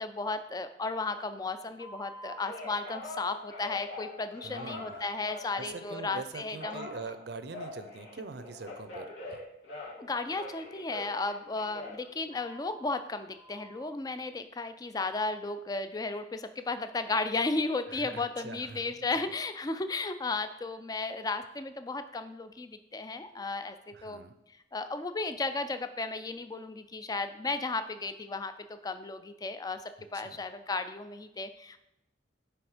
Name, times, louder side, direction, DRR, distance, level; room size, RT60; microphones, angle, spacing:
voice 1, 0.0-6.9 10.0-24.2 24.7-31.8, left 3 dB, 20° left, 10 dB, 0.3 m, -34 dB
Telephone, 1.8-6.1 6.6-10.0 10.3-12.8 13.3-13.8, left 2 dB, 85° left, 2.2 m, -44 dB
voice 2, 4.4-5.1 5.6-9.5 17.9-19.3 23.9-24.4 30.1-30.4, right 4 dB, 60° right, 10 dB, 0.5 m, -44 dB
9.2 x 3.4 x 5.0 m, 0.86 s
head